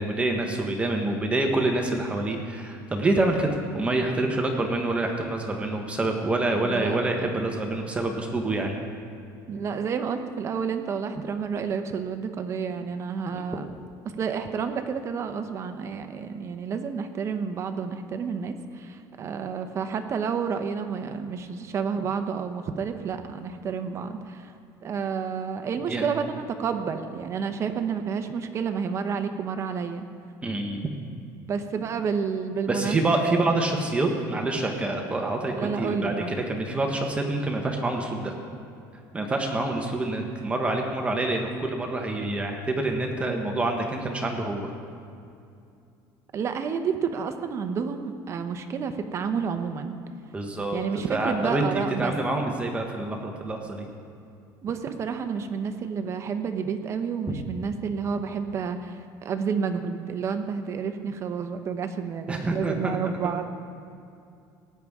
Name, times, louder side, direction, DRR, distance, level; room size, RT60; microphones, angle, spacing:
voice 1, 0.0-8.8 25.9-26.1 30.4-30.9 32.7-38.4 39.1-44.7 50.3-50.8 51.1-53.9 62.3-63.0, right 2 dB, 15° right, 2 dB, 1.0 m, -27 dB
voice 2, 6.6-7.5 9.5-13.7 14.0-24.5 24.8-30.1 31.5-33.4 35.5-36.3 37.7-37.8 46.3-50.0 50.7-52.1 54.6-63.5, right 6 dB, 35° right, 8 dB, 0.7 m, -30 dB
18.0 x 9.7 x 3.6 m, 2.5 s
cardioid pair, 145°, 8 cm